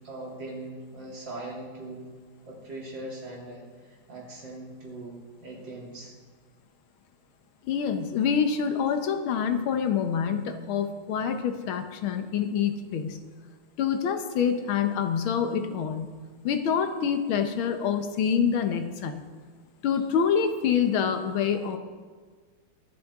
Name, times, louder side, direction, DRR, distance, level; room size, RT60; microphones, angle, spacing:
voice 1, 0.0-2.1 2.5-6.1, right 2 dB, 60° right, -4 dB, 3.6 m, -40 dB
voice 2, 7.6-13.2 13.8-16.2 16.4-19.2 19.8-21.8, left 7 dB, 80° left, 8 dB, 1.8 m, -26 dB
23.5 x 8.3 x 3.6 m, 1.5 s
omnidirectional pair, 2.2 m